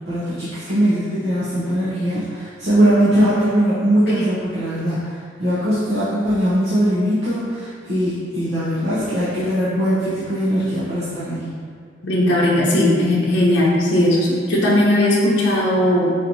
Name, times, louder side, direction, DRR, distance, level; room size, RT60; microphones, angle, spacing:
voice 1, 0.1-11.5, equal, 70° right, -12 dB, 0.9 m, -20 dB
voice 2, 12.0-16.1, left 1 dB, 70° left, -6 dB, 0.8 m, -17 dB
5.1 x 2.9 x 2.7 m, 2.1 s
head